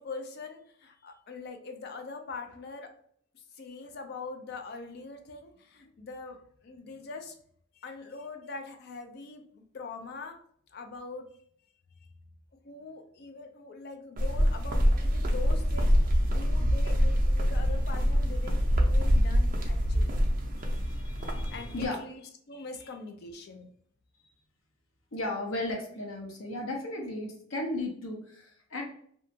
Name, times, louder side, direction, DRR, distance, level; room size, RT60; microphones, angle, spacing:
voice 1, 0.0-2.9 3.3-7.3 7.7-10.4 10.7-11.3 12.6-20.2 21.5-23.7, left 3 dB, 50° left, 5 dB, 0.4 m, -43 dB
sound 1, 14.2-21.9, equal, 40° right, 0.5 m, -25 dB
voice 2, 20.6-22.1 25.1-28.8, left 2 dB, 90° left, 1 dB, 0.7 m, -35 dB
2.7 x 2.2 x 2.6 m, 0.63 s
head